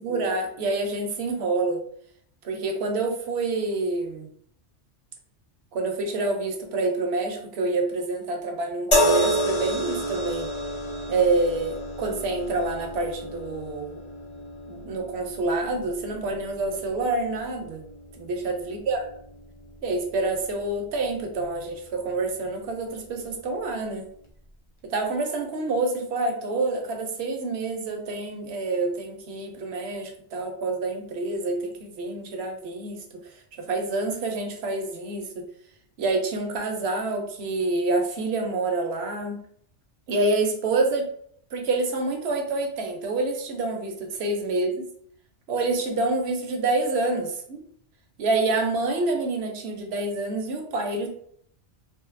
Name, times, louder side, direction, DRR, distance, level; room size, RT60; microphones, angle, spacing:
voice 1, 0.0-1.8 2.4-4.3 5.7-10.5 11.1-14.0 14.7-17.8 18.2-19.0 19.8-24.1 24.8-33.2 33.6-35.5 36.0-39.4 40.1-41.1 41.5-44.8 45.5-47.6 48.2-51.1, right 3 dB, 70° right, 3 dB, 0.9 m, -27 dB
sound 1, 8.9-22.2 23.2-23.4, equal, 35° left, 0.6 m, -31 dB
2.8 x 2.6 x 2.5 m, 0.63 s
omnidirectional pair, 1.2 m